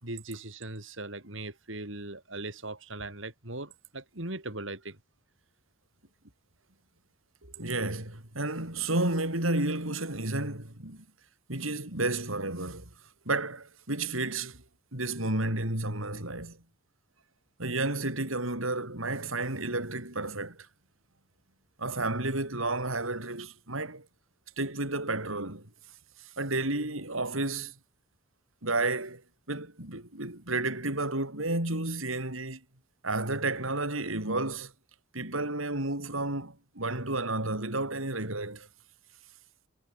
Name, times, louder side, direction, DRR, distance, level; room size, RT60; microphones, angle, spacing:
voice 1, 0.0-5.0 7.4-7.6, right 2 dB, 70° right, 5.3 m, -39 dB
voice 2, 7.6-11.0 11.5-12.9 13.3-14.6 14.9-16.6 17.6-20.7 21.8-24.1 24.6-25.7 26.2-27.7 28.6-29.2 29.5-32.6 33.0-34.7 35.1-38.7, right 2 dB, 90° right, 7.7 m, -31 dB
head